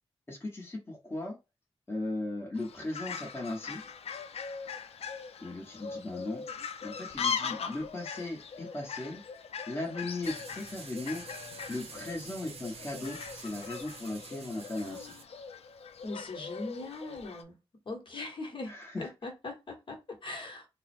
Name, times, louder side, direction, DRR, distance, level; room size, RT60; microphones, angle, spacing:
voice 1, 0.3-1.4 1.9-3.8 5.4-6.4 6.8-9.2 9.7-11.2 11.7-15.2 18.7-18.9, left 2 dB, 20° left, 1.0 m, -37 dB
Fowl, 2.6-17.4, left 6 dB, 80° left, 0.5 m, -40 dB
sound 1, 10.2-15.2, right 4 dB, 75° right, 0.7 m, -48 dB
voice 2, 14.8-15.2 16.0-17.6 17.8-20.7, left 2 dB, 55° left, 1.1 m, -41 dB
3.7 x 2.1 x 4.2 m
wide cardioid pair, 165°, 10 cm